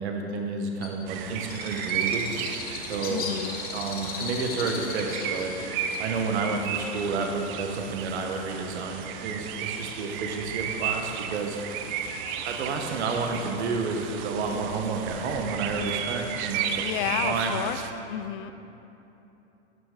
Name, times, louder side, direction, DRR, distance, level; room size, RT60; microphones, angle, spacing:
voice 1, 0.0-2.3 2.9-3.2 3.7-5.5 6.0-11.6 12.4-16.8 17.2-17.6, right 4 dB, 75° right, 3 dB, 1.1 m, -30 dB
Bird, 0.8-8.0, left 5 dB, 25° left, 0.9 m, -38 dB
sound 1, 1.1-17.9, right 8 dB, 35° right, 0.5 m, -34 dB
voice 2, 3.1-3.6 16.8-17.8 18.1-18.5, left 12 dB, 50° left, 12 dB, 0.5 m, -31 dB
12.5 x 6.0 x 3.7 m, 2.9 s
hypercardioid pair, 120°, 34 cm